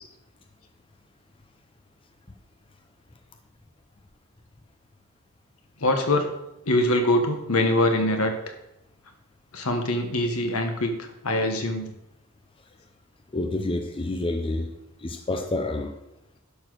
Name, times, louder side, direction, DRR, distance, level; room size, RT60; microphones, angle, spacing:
voice 1, 5.8-6.3 6.7-8.3 9.5-11.9, left 1 dB, 75° left, 5 dB, 1.5 m, -23 dB
voice 2, 13.3-14.7 15.0-15.9, left 2 dB, 25° left, 5 dB, 0.7 m, -28 dB
11.0 x 4.6 x 6.3 m, 0.88 s
head